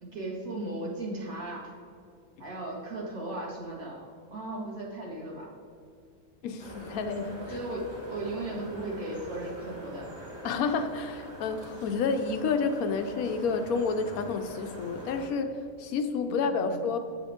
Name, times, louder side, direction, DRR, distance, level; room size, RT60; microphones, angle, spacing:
voice 1, 0.0-1.7 2.4-5.5 7.5-10.1 16.3-16.8, right 2 dB, 65° right, -4 dB, 2.2 m, -36 dB
voice 2, 6.4-7.6 10.4-17.0, left 5 dB, 75° left, 7 dB, 1.1 m, -30 dB
sound 1, 6.6-15.3, equal, 30° right, 1.8 m, -44 dB
7.9 x 7.8 x 3.6 m, 2.4 s
omnidirectional pair, 1.6 m